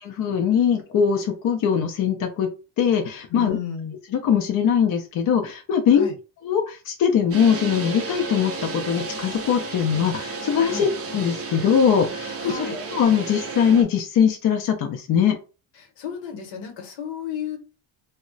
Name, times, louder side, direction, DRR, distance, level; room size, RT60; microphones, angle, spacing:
voice 1, 0.0-2.5 2.8-3.6 4.1-6.1 6.4-15.4, left 7 dB, 45° left, 3 dB, 0.4 m, -21 dB
voice 2, 3.3-3.9 5.9-6.1 10.7-10.9 12.4-12.8 15.7-17.6, left 7 dB, 65° left, 4 dB, 1.0 m, -33 dB
sound 1, 7.3-13.8, right 3 dB, 30° right, 0.4 m, -32 dB
2.2 x 2.1 x 3.7 m, 0.33 s
cardioid pair, 150°, 49 cm